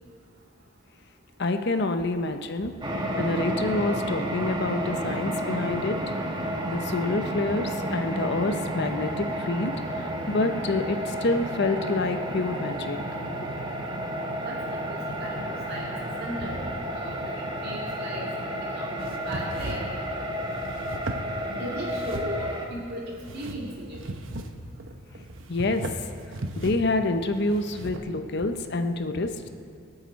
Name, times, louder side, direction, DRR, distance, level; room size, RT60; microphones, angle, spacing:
voice 1, 1.4-2.7 3.2-6.0 6.7-13.0 25.5-25.8 26.6-29.3, left 2 dB, 55° left, 7 dB, 0.7 m, -27 dB
sound 1, 2.8-22.7, right 1 dB, 20° right, 1.3 m, -31 dB
voice 2, 14.3-15.9 16.2-16.6 16.9-19.9 21.5-24.0 29.1-29.2, equal, 50° right, -4 dB, 2.5 m, -37 dB
sound 2, 19.0-28.0, right 1 dB, 65° right, 0.9 m, -38 dB
25.5 x 8.9 x 4.1 m, 2.4 s
head